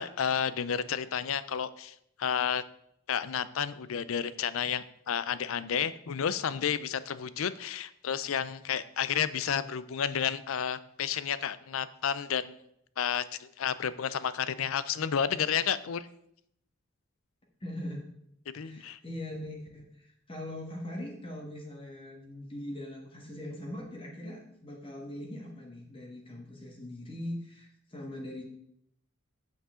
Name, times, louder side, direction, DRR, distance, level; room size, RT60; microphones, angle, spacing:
voice 1, 0.0-2.6 3.1-12.6 13.0-16.1 18.5-19.0, left 8 dB, 75° left, 15 dB, 0.5 m, -31 dB
voice 2, 17.6-18.0 18.5-28.4, left 1 dB, 25° left, 0 dB, 1.4 m, -41 dB
8.2 x 7.4 x 3.7 m, 0.74 s
head